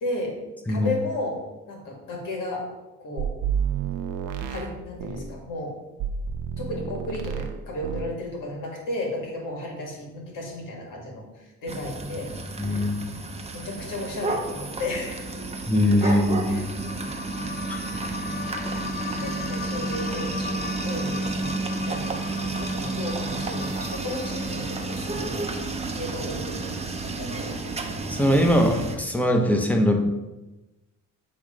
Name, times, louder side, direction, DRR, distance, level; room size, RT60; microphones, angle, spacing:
voice 1, 0.0-0.4 0.7-1.4 1.7-2.7 3.0-3.3 4.5-5.8 6.6-12.3 12.7-12.8 13.5-15.6 16.0-17.1 19.2-25.4 25.9-27.6, left 1 dB, 80° left, -1 dB, 2.1 m, -34 dB
sound 1, 3.2-5.3 6.0-7.6 7.8-8.2, right 7 dB, 80° right, 0.7 m, -30 dB
sound 2, 11.7-29.0, right 3 dB, 20° right, 0.8 m, -31 dB
voice 2, 12.6-13.0 15.7-16.7 17.7-17.8 28.1-30.0, equal, 5° left, 3 dB, 1.0 m, -21 dB
sound 3, 16.3-26.5, left 5 dB, 30° left, 0.6 m, -38 dB
8.1 x 3.2 x 5.0 m, 1.1 s
cardioid pair, 90°, 32 cm